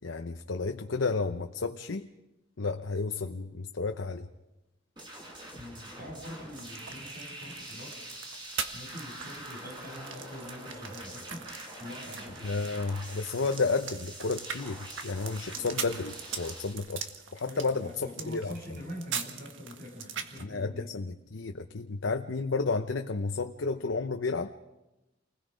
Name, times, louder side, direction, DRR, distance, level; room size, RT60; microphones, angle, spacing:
voice 1, 0.0-2.1 2.6-4.3 12.4-17.0 17.3-18.5 20.4-24.5, left 4 dB, 80° left, 6 dB, 0.8 m, -32 dB
sound 1, 5.0-16.7, right 1 dB, 25° right, 5.8 m, -45 dB
voice 2, 5.5-8.0 8.7-11.5 11.8-12.4 17.4-20.9, left 1 dB, 55° right, 0 dB, 7.3 m, -44 dB
sound 2, 6.5-20.4, right 7 dB, 80° right, 1.6 m, -42 dB
29.0 x 20.5 x 5.1 m, 1.0 s
head